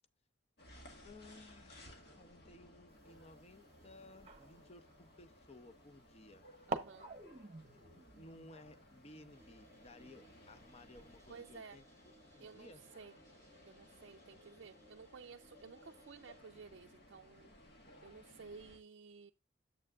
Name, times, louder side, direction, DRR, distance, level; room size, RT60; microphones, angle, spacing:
sound 1, 0.6-18.8, left 1 dB, 55° left, 1.9 m, -60 dB
voice 1, 1.0-6.4 7.9-12.8, left 2 dB, 30° left, 0.7 m, -58 dB
sound 2, 2.9-5.8 6.4-6.5 6.7-11.3, right 3 dB, 30° right, 0.9 m, -49 dB
voice 2, 6.7-7.1 11.3-11.8 12.4-13.2 13.6-17.5 18.0-19.3, right 5 dB, 60° right, 0.5 m, -54 dB
sound 3, 9.3-16.4, equal, 15° left, 3.4 m, -66 dB
9.1 x 7.7 x 2.4 m
head